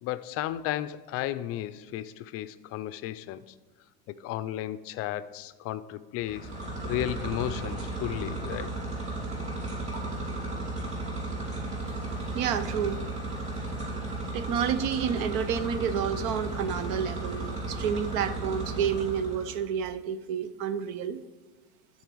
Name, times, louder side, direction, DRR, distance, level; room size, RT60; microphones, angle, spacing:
voice 1, 0.0-3.4 4.1-6.5 6.8-8.7, left 13 dB, 40° left, 13 dB, 0.5 m, -34 dB
sound 1, 6.2-19.6, right 2 dB, 20° right, 2.7 m, -34 dB
voice 2, 12.3-13.0 14.3-21.2, right 8 dB, 60° right, 13 dB, 0.7 m, -30 dB
12.5 x 4.3 x 4.6 m, 1.4 s
supercardioid pair, 135°, 36 cm